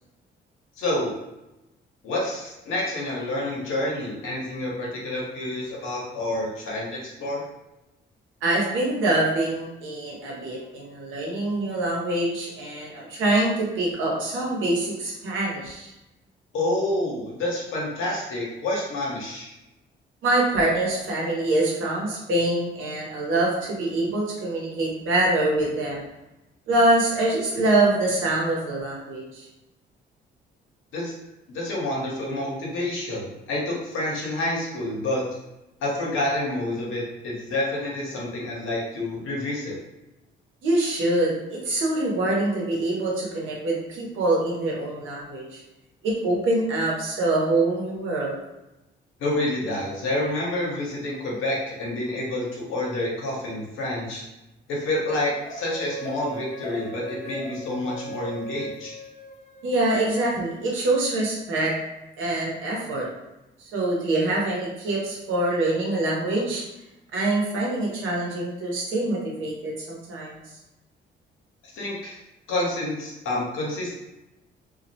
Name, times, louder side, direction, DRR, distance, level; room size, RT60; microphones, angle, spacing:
voice 1, 0.8-1.1 2.0-7.4 16.5-19.5 30.9-31.1 31.5-35.3 35.8-39.8 49.2-54.2 54.7-59.0 71.7-72.2 72.5-74.0, left 1 dB, 85° left, -3 dB, 0.8 m, -28 dB
voice 2, 8.4-15.9 20.2-26.0 26.7-29.5 40.6-45.6 46.0-48.4 59.6-61.7 62.2-63.1 63.6-66.6 67.1-70.4, right 2 dB, 85° right, -3 dB, 0.8 m, -25 dB
sound 1, 55.4-59.9, right 1 dB, 35° left, 0.4 m, -37 dB
2.3 x 2.1 x 2.7 m, 0.95 s
cardioid pair, 90°, 20 cm